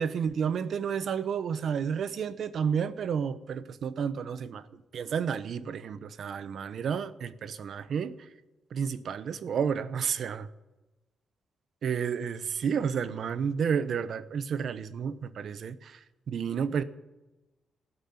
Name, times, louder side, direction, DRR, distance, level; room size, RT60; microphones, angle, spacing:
voice 1, 0.0-4.6 4.9-8.1 8.7-10.5 11.8-16.0 16.3-16.8, right 7 dB, 60° right, 14 dB, 0.9 m, -31 dB
17.5 x 8.1 x 9.6 m, 1.1 s
cardioid pair, 115°, 0 cm